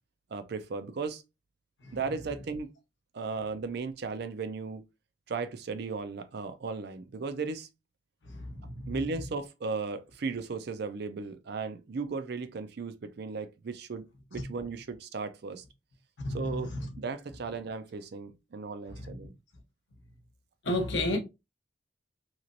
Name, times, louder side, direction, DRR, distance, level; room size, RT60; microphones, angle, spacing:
voice 1, 0.3-1.2 1.9-2.7 3.1-4.8 5.3-7.7 8.9-15.6 16.3-19.3, right 4 dB, 60° right, 0.5 m, -36 dB
voice 2, 8.2-8.9 16.2-17.0 18.9-19.2 20.6-21.2, left 1 dB, 70° left, 1.0 m, -33 dB
3.0 x 2.9 x 2.5 m
head